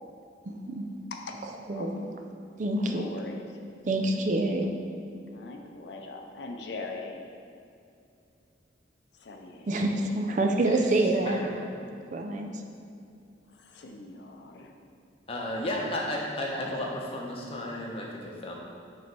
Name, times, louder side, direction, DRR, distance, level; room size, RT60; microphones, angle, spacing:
voice 1, 0.5-0.9 1.7-2.0 2.6-3.1 3.9-4.7 9.7-11.4 12.1-12.6, right 2 dB, 40° right, 4 dB, 0.4 m, -27 dB
voice 2, 1.7-2.1 2.9-3.7 5.3-7.2 9.1-10.2 13.5-14.7, left 3 dB, 70° left, 3 dB, 0.5 m, -42 dB
voice 3, 11.3-11.6 15.3-18.5, left 1 dB, 30° left, -2 dB, 0.8 m, -33 dB
6.5 x 3.2 x 4.5 m, 2.5 s
head